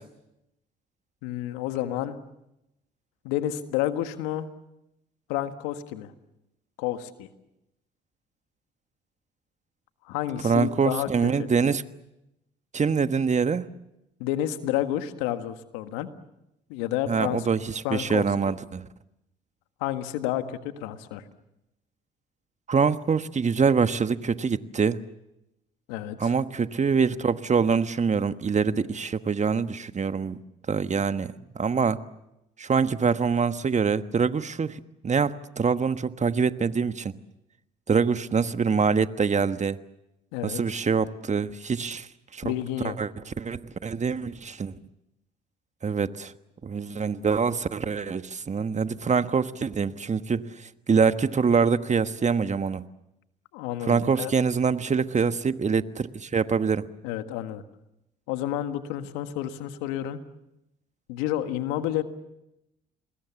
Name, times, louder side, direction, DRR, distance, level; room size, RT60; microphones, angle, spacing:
voice 1, 1.2-2.1 3.2-4.5 5.3-6.1 6.8-7.3 10.0-11.1 11.4-11.5 14.2-16.1 16.7-17.5 17.8-18.5 19.8-21.2 25.9-26.3 40.3-40.6 42.4-42.9 53.5-54.3 57.0-57.6 58.3-60.2 61.1-62.0, left 12 dB, 85° left, 9 dB, 1.6 m, -30 dB
voice 2, 10.4-11.8 12.7-13.7 17.1-18.8 22.7-25.0 26.2-30.4 30.7-32.0 32.6-34.8 35.0-37.1 37.9-39.8 40.4-42.1 42.3-42.5 42.8-44.7 45.8-46.3 46.6-50.5 50.9-52.9 53.9-56.9, right 5 dB, 35° right, 11 dB, 1.3 m, -25 dB
28.5 x 21.5 x 7.2 m, 0.87 s
hypercardioid pair, 55°, 21 cm